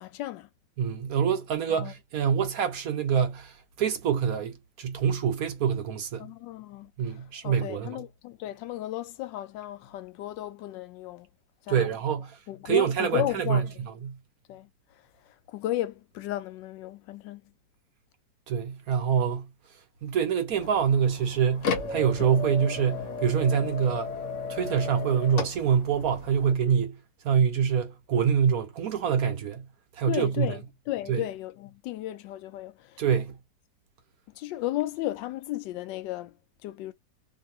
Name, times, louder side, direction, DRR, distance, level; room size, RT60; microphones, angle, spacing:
voice 1, 0.0-0.5 1.7-1.9 6.2-11.3 11.6-11.9 12.5-13.7 14.5-14.7 15.2-17.5 30.1-33.0 34.3-36.4 36.6-36.9, left 15 dB, 85° left, 1.3 m, -34 dB
voice 2, 0.8-6.3 7.0-8.0 11.7-12.4 12.6-14.2 18.5-19.5 20.0-24.1 24.5-27.0 27.2-29.7 30.0-30.5 31.1-31.2 33.0-33.4, right 7 dB, 60° right, 1.1 m, -26 dB
sound 1, 20.5-26.5, left 4 dB, 55° left, 1.0 m, -35 dB
2.8 x 2.7 x 2.7 m
omnidirectional pair, 1.9 m